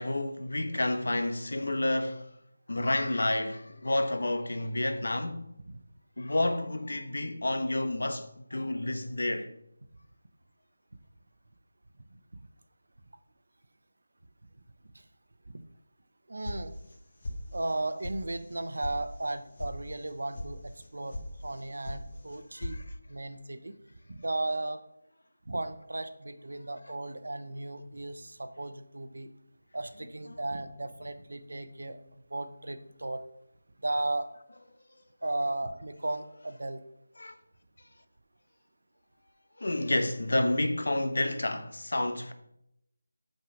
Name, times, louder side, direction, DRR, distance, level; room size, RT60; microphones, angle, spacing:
voice 1, 0.0-2.3 2.7-5.5 6.2-9.5 22.6-22.8 30.3-30.4 37.2-37.3 39.6-42.3, left 1 dB, 75° left, 1.0 m, -30 dB
voice 2, 16.3-16.7 17.5-21.2 21.4-22.8 23.1-23.7 24.1-24.8 25.5-29.3 29.7-32.0 32.3-33.2 33.8-34.3 35.2-36.8, right 2 dB, 75° right, 0.9 m, -35 dB
sound 1, 16.4-17.0 17.2-17.8 18.0-18.1 18.5-18.9 19.2-19.7 20.0-20.5 20.8-21.3 21.5-22.0 22.3-22.8, left 1 dB, 35° left, 1.2 m, -38 dB
6.2 x 5.7 x 6.3 m
figure-of-eight pair, 175°, 0 cm